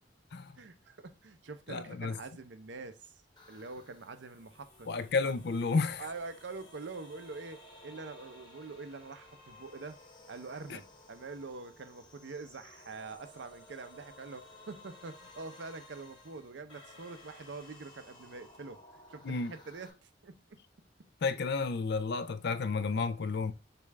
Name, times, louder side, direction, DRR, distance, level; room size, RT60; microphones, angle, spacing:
voice 1, 0.6-3.2 3.5-4.9 6.0-10.0 10.3-18.8 19.1-20.6 21.0-21.1, right 3 dB, 70° right, 0.6 m, -45 dB
voice 2, 1.7-2.2 4.9-6.1 19.2-19.5 21.2-23.5, left 4 dB, 60° left, 0.5 m, -31 dB
sound 1, 3.4-19.9, left 1 dB, 25° left, 1.3 m, -56 dB
6.8 x 2.5 x 3.1 m
head